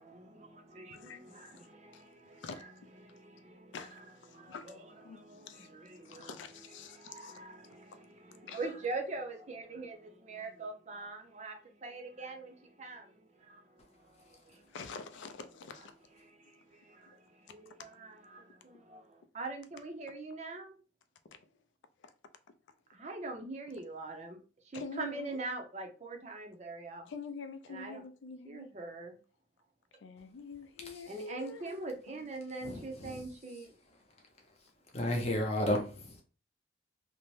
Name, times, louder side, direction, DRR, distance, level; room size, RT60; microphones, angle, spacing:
voice 1, 0.0-14.8 15.8-15.9 16.2-20.8 22.9-27.1 27.7-28.0 28.4-29.2 31.1-33.8, right 3 dB, 35° right, 0.5 m, -44 dB
voice 2, 0.9-1.5 1.9-2.0 2.4-2.6 3.7-4.7 5.0-7.4 8.4-8.6 14.7-15.9 16.4-16.5 17.1-17.2 21.3-21.5 22.0-22.1 24.7-25.4 27.1-28.7 30.0-31.8, left 4 dB, 75° left, 0.4 m, -46 dB
voice 3, 32.6-33.2 34.9-36.2, left 1 dB, 35° left, 0.7 m, -32 dB
2.6 x 2.1 x 3.1 m
head